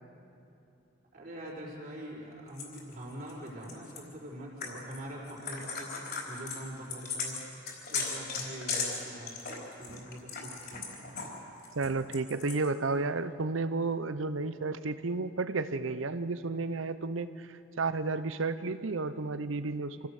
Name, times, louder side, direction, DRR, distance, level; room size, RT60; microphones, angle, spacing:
voice 1, 1.1-7.4 7.9-11.2, right 1 dB, 45° right, -4 dB, 4.6 m, -44 dB
sound 1, 2.6-4.0 4.6-5.0 5.2-11.3 11.6-12.7, left 5 dB, 55° left, 4.2 m, -37 dB
voice 2, 11.7-20.1, right 3 dB, 90° right, 12 dB, 0.8 m, -32 dB
26.5 x 16.5 x 6.6 m, 2.7 s
head